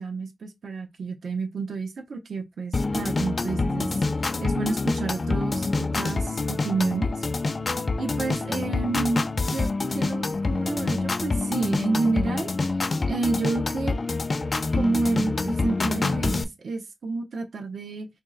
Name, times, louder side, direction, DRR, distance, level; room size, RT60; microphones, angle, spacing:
voice 1, 0.0-3.9 4.4-7.1 8.0-12.5 13.1-14.0 14.7-18.1, right 3 dB, 90° right, 0.7 m, -30 dB
sound 1, 2.7-16.4, left 3 dB, 45° left, 0.5 m, -26 dB
3.1 x 2.7 x 3.8 m
wide cardioid pair, 115°, 0 cm